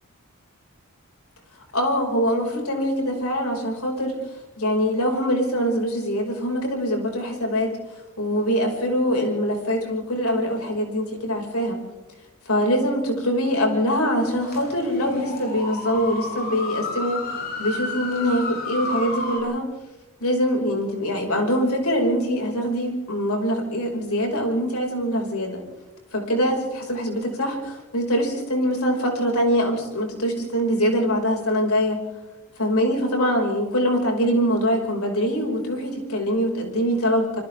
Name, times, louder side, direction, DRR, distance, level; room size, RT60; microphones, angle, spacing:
voice 1, 1.7-4.1 4.6-7.7 8.2-11.8 12.5-19.6 20.2-25.6 26.1-32.0 32.6-37.4, equal, 90° left, 2 dB, 5.8 m, -23 dB
sound 1, 14.2-19.4, left 2 dB, 45° left, 7.0 m, -31 dB
27.5 x 25.5 x 3.7 m, 1.0 s
head